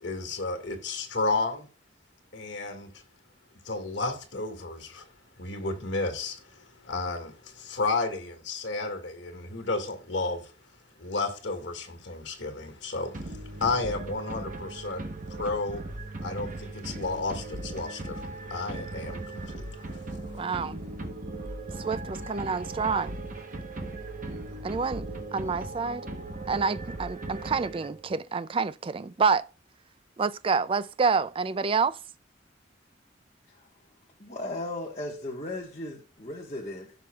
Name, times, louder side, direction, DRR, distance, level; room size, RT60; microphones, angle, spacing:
voice 1, 0.0-1.7 2.3-2.9 3.6-5.1 5.4-10.5 11.0-15.1 15.4-15.8 16.2-20.0, left 3 dB, 70° left, 2.0 m, -32 dB
sound 1, 13.1-28.2, right 2 dB, 45° right, 1.1 m, -38 dB
voice 2, 20.4-20.8 21.8-23.2 24.6-25.1 25.3-26.1 26.5-29.5 30.2-32.0, right 5 dB, 30° right, 0.3 m, -28 dB
voice 3, 34.2-36.9, left 1 dB, 35° left, 1.4 m, -36 dB
16.0 x 5.9 x 2.4 m
head